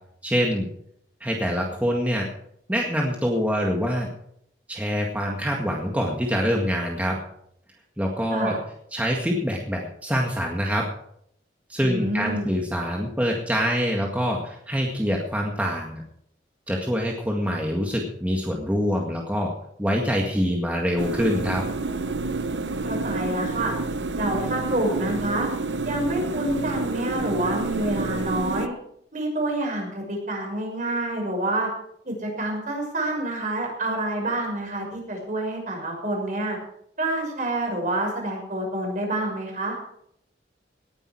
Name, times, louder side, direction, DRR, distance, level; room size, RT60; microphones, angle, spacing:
voice 1, 0.2-0.7 1.2-2.3 2.7-4.1 4.7-7.2 8.0-8.5 8.9-10.9 11.7-16.0 16.7-19.5 19.8-21.7, equal, 10° right, -1 dB, 1.9 m, -25 dB
voice 2, 11.8-12.5 22.8-23.7 24.2-25.5 25.8-28.7 29.1-31.7 32.0-36.6 37.0-39.8, right 1 dB, 45° right, 1 dB, 6.1 m, -27 dB
sound 1, 21.0-28.7, right 3 dB, 90° right, 1.0 m, -29 dB
18.5 x 10.5 x 4.7 m, 0.71 s
head